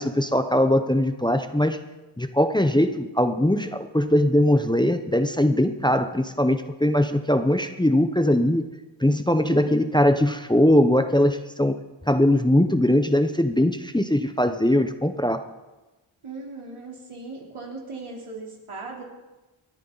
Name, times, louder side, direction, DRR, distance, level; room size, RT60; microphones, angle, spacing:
voice 1, 0.0-1.8 2.2-8.6 9.0-11.7 12.1-15.4, left 1 dB, 10° left, 8 dB, 0.8 m, -21 dB
voice 2, 9.5-10.0 16.2-19.0, right 3 dB, 85° right, -2 dB, 3.6 m, -38 dB
27.5 x 9.9 x 4.0 m, 1.1 s
wide cardioid pair, 75°, 49 cm